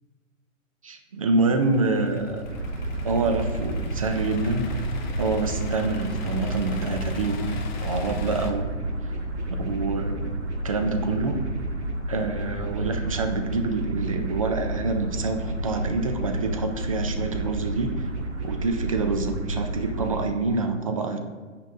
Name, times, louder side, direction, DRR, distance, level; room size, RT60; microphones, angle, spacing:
voice 1, 0.8-2.4 3.0-4.7 5.1-7.4 7.8-8.7 9.5-10.4 10.6-11.4 12.1-18.1 18.4-21.2, right 3 dB, 30° right, 5 dB, 0.4 m, -26 dB
Idling / Accelerating revving vroom, 1.4-8.5, left 3 dB, 35° left, 0.7 m, -36 dB
sound 1, 2.4-20.2, right 2 dB, 60° right, 1.6 m, -31 dB
9.0 x 5.2 x 2.5 m, 1.4 s
figure-of-eight pair, 130°, 40 cm